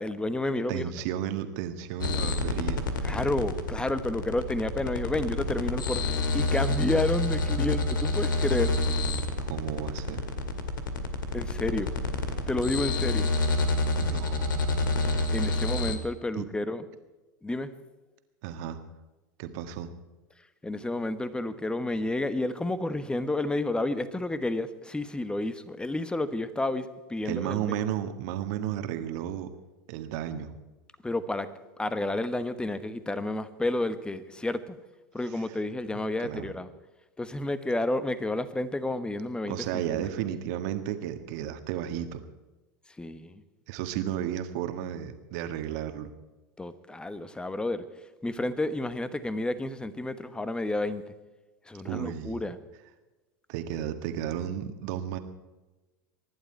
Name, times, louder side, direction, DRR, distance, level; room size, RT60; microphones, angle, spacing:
voice 1, 0.0-0.9 3.0-6.0 6.3-8.7 11.3-11.9 12.5-13.3 15.3-16.8 17.4-17.7 20.6-27.6 31.0-31.5 31.8-34.8 35.1-36.7 37.2-40.1 43.0-43.4 46.6-47.8 48.2-51.0 51.7-52.6, left 2 dB, 10° left, 13 dB, 1.2 m, -30 dB
voice 2, 0.7-2.8 9.4-10.3 14.0-14.9 16.4-16.5 18.4-18.8 19.4-19.9 27.2-29.5 29.9-30.5 35.9-36.5 39.5-42.2 43.7-46.1 51.8-52.4 53.5-55.2, right 10 dB, 60° right, 8 dB, 1.8 m, -33 dB
sound 1, 2.0-15.9, left 2 dB, 80° left, 2.0 m, -28 dB
24.5 x 11.5 x 4.6 m, 1.1 s
hypercardioid pair, 90°, 11 cm